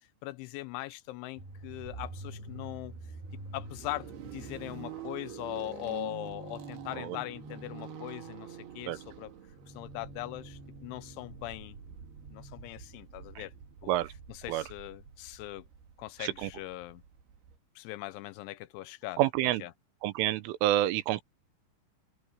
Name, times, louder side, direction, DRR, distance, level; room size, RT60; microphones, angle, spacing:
voice 1, 0.2-2.9 3.5-9.3 9.8-11.8 12.3-13.5 13.8-14.0 14.4-15.6 16.0-17.0 17.8-19.2 19.6-19.7, left 18 dB, 85° left, 2.9 m, -40 dB
sound 1, 1.4-17.6, right 5 dB, 55° right, 4.3 m, -46 dB
voice 2, 16.2-16.5 19.2-19.7 20.0-21.2, right 14 dB, 85° right, 3.5 m, -28 dB
open air
omnidirectional pair, 5.7 m